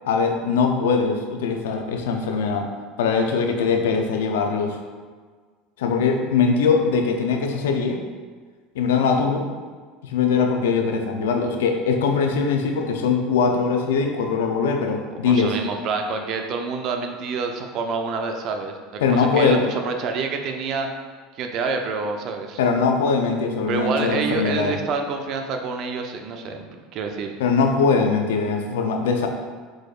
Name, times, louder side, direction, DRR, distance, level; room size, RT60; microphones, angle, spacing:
voice 1, 0.0-2.7 3.0-4.8 5.8-8.0 8.7-9.5 10.0-15.6 19.0-19.6 22.6-24.7 27.4-29.3, left 5 dB, 85° left, 3 dB, 0.5 m, -21 dB
voice 2, 15.1-20.9 21.3-22.6 23.7-27.3, right 4 dB, 55° right, 4 dB, 0.6 m, -27 dB
4.9 x 4.1 x 2.4 m, 1.5 s
supercardioid pair, 95°, 0 cm